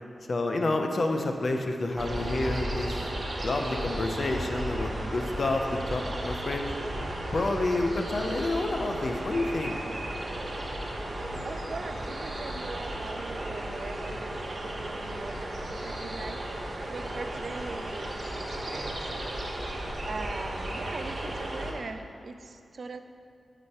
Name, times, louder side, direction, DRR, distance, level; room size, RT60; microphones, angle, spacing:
voice 1, 0.3-3.1 3.4-6.7 7.3-9.8, left 2 dB, 60° left, 4 dB, 0.7 m, -29 dB
sound 1, 2.0-21.7, right 1 dB, 50° right, 1.0 m, -34 dB
voice 2, 11.4-19.7 20.0-23.0, right 3 dB, 70° right, 8 dB, 0.4 m, -41 dB
8.9 x 5.1 x 4.3 m, 2.5 s
cardioid pair, 60°, 0 cm